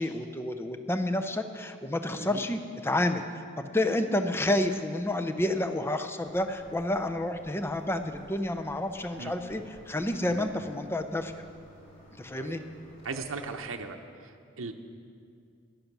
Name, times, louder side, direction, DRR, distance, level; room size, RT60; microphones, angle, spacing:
voice 1, 0.0-3.4 3.7-11.4 12.2-12.6, left 1 dB, 10° left, 8 dB, 0.5 m, -30 dB
sound 1, 6.2-13.6, right 1 dB, 30° left, 3.1 m, -54 dB
voice 2, 13.0-14.0 14.2-14.3 14.6-14.7, right 4 dB, 75° right, 4 dB, 0.7 m, -37 dB
13.5 x 10.5 x 6.0 m, 2.4 s
head